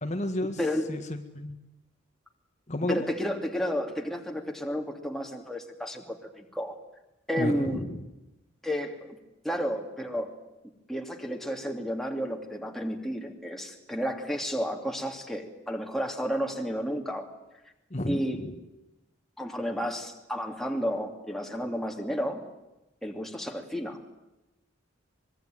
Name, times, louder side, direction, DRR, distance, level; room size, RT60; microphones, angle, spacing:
voice 1, 0.0-0.6 0.9-1.6 2.7-3.1 7.4-8.0 17.9-18.6, left 1 dB, 40° left, 5 dB, 1.8 m, -32 dB
voice 2, 2.9-6.8 7.3-7.8 8.6-9.2 9.4-10.3 10.9-17.3 18.1-18.4 19.4-22.4 23.0-24.0, equal, ahead, 2 dB, 2.7 m, -32 dB
24.5 x 23.0 x 9.4 m, 0.96 s
head